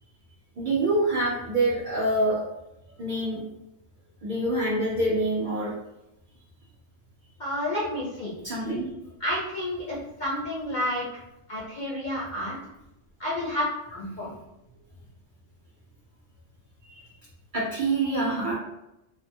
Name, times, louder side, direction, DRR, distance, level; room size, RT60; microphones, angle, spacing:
voice 1, 0.6-2.4 3.0-3.4 4.2-5.7 8.4-8.8 16.9-17.0 17.5-18.6, right 2 dB, 55° right, -6 dB, 0.6 m, -26 dB
voice 2, 7.4-8.3 9.2-11.1 11.5-12.6 13.2-14.4, left 1 dB, 55° left, -6 dB, 0.5 m, -30 dB
2.4 x 2.3 x 2.6 m, 0.89 s
omnidirectional pair, 1.3 m